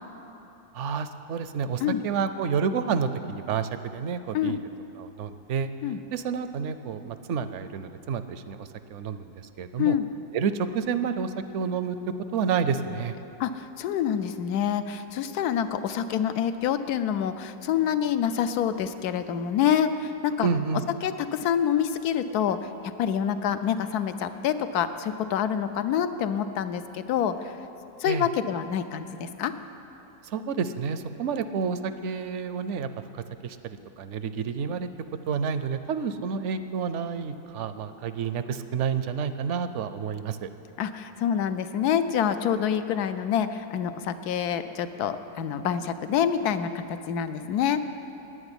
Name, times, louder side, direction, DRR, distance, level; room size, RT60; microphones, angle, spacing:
voice 1, 0.7-4.6 5.0-5.7 6.1-10.0 10.3-12.0 12.3-13.1 20.4-20.8 28.1-28.3 30.3-32.9 33.4-34.9 35.3-40.5, right 6 dB, 65° right, 11 dB, 0.8 m, -29 dB
voice 2, 13.4-20.5 21.0-27.5 28.0-29.5 40.8-47.8, left 9 dB, 85° left, 10 dB, 1.2 m, -27 dB
11.0 x 9.1 x 9.8 m, 2.9 s
omnidirectional pair, 1.6 m